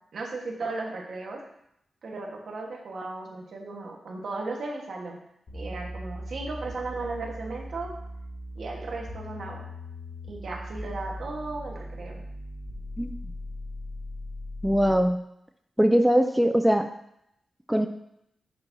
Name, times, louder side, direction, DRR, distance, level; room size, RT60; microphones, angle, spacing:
voice 1, 0.1-1.4 2.0-5.2 5.5-7.9 8.5-9.7 10.3-12.2, right 3 dB, 70° right, 0 dB, 1.3 m, -36 dB
sound 1, 5.5-15.1, equal, 70° left, 2.1 m, -39 dB
voice 2, 14.6-15.2 15.8-16.9 17.7-17.9, equal, 5° right, 7 dB, 0.3 m, -21 dB
6.7 x 6.1 x 2.7 m, 0.77 s
cardioid pair, 85°, 0 cm